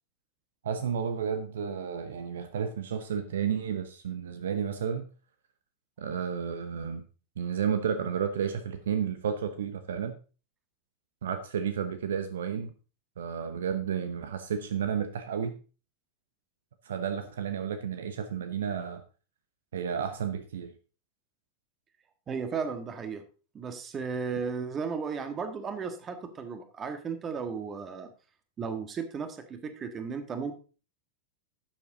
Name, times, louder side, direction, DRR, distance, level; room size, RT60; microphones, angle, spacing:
voice 1, 0.6-5.1 6.0-7.0 7.4-10.2 11.2-12.7 13.2-15.6 16.8-19.0 19.7-20.7, right 7 dB, 60° right, 9 dB, 0.9 m, -32 dB
voice 2, 22.3-23.2 23.5-28.1 28.6-30.5, right 5 dB, 25° right, 9 dB, 1.6 m, -35 dB
12.0 x 7.4 x 3.9 m, 0.35 s
figure-of-eight pair, 90°, 0 cm